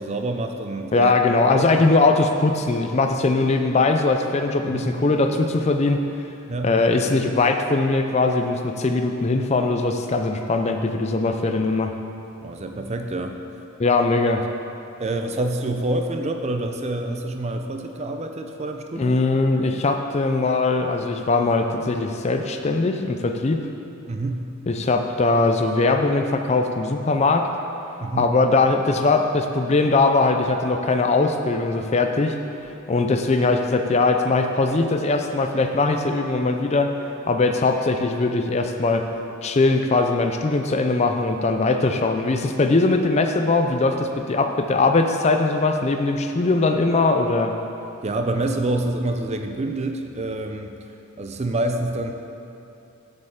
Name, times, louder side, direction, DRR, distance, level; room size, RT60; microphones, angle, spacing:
voice 1, 0.0-1.1 1.5-1.7 4.7-4.9 6.5-6.7 12.4-13.4 14.4-14.5 15.0-19.2 24.1-24.5 28.0-28.4 48.0-50.8 51.2-52.1, right 2 dB, 30° right, 5 dB, 0.5 m, -27 dB
voice 2, 0.9-6.0 6.6-11.9 13.8-14.4 19.0-23.7 24.7-27.5 28.2-32.4 32.6-36.9 37.3-39.1 39.4-47.5, left 3 dB, 30° left, 5 dB, 0.4 m, -20 dB
7.8 x 5.4 x 7.2 m, 2.8 s
head